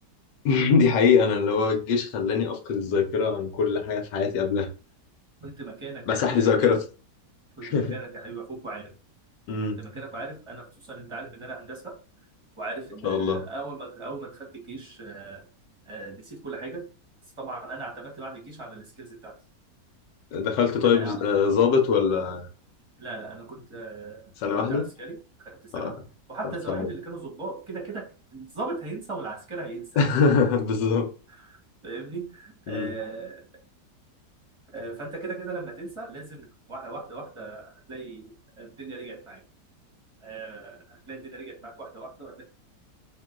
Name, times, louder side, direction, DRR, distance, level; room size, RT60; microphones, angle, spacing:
voice 1, 0.4-4.7 6.1-6.8 7.6-7.9 9.5-9.8 13.0-13.5 20.3-22.4 24.4-24.8 25.7-25.9 26.7-26.9 30.0-31.1 32.7-32.9, left 5 dB, 75° left, 1.5 m, -23 dB
voice 2, 5.4-6.8 7.6-8.9 9.8-12.0 12.6-15.5 15.9-16.8 17.4-19.4 20.8-21.2 23.0-26.0 26.3-30.0 31.4-31.6 31.8-33.5 34.7-39.4 40.2-42.4, right 3 dB, 20° right, 1.1 m, -38 dB
3.8 x 2.9 x 3.7 m
omnidirectional pair, 1.9 m